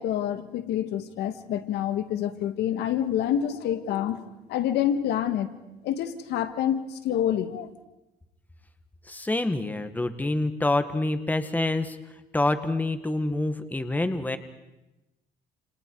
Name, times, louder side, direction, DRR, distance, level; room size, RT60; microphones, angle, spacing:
voice 1, 0.0-4.2 4.5-5.5 5.8-7.7, left 10 dB, 80° left, 9 dB, 1.8 m, -27 dB
voice 2, 9.1-12.0 12.3-14.4, left 2 dB, 10° left, 9 dB, 1.8 m, -26 dB
29.0 x 28.5 x 4.8 m, 0.97 s
cardioid pair, 110°, 17 cm